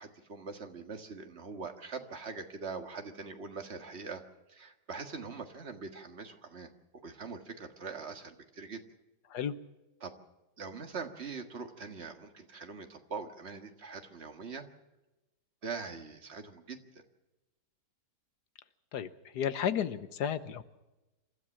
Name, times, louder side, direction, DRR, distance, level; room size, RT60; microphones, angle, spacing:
voice 1, 0.0-4.2 4.5-6.7 7.0-8.8 10.0-10.1 10.6-14.7 15.6-16.8, right 4 dB, 40° right, 6 dB, 1.9 m, -42 dB
voice 2, 18.9-20.6, left 8 dB, 75° left, 13 dB, 1.5 m, -33 dB
27.5 x 13.0 x 7.3 m, 1.0 s
omnidirectional pair, 1.8 m